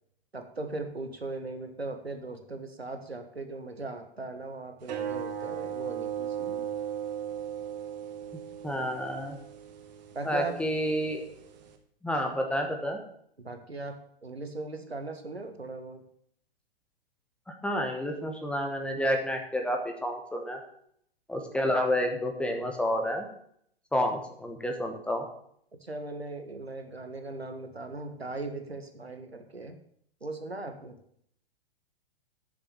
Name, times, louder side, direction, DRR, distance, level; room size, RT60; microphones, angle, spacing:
voice 1, 0.3-6.7 10.1-10.6 13.4-14.0 14.2-16.0 25.8-29.8 30.2-31.0, right 3 dB, 85° right, 6 dB, 1.6 m, -38 dB
sound 1, 4.8-11.8, right 9 dB, 45° right, 1.4 m, -37 dB
voice 2, 8.6-9.4 10.2-11.2 12.0-13.0 17.5-20.6 21.3-23.2 23.9-25.2, equal, 5° left, 3 dB, 1.1 m, -29 dB
7.6 x 7.1 x 8.2 m, 0.68 s
figure-of-eight pair, 110°, 30 cm